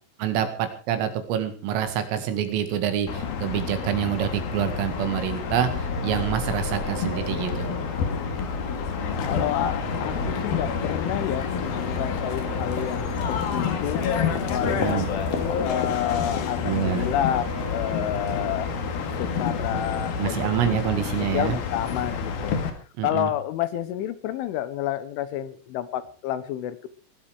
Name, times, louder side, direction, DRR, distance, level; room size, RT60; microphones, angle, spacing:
voice 1, 0.2-7.7 14.6-15.1 16.6-17.1 20.2-21.6 23.0-23.3, right 9 dB, 90° right, 8 dB, 4.7 m, -26 dB
sound 1, 3.1-22.7, left 6 dB, 55° left, 3.4 m, -29 dB
sound 2, 4.6-20.0, right 2 dB, 45° right, 6.2 m, -40 dB
sound 3, 5.5-11.7, left 2 dB, 30° left, 3.6 m, -38 dB
voice 2, 9.2-14.0 14.5-15.0 15.6-17.5 17.7-18.7 19.2-20.5 21.2-22.5 23.0-26.9, left 11 dB, 75° left, 14 dB, 3.5 m, -29 dB
20.0 x 12.0 x 4.9 m, 0.38 s
omnidirectional pair, 5.7 m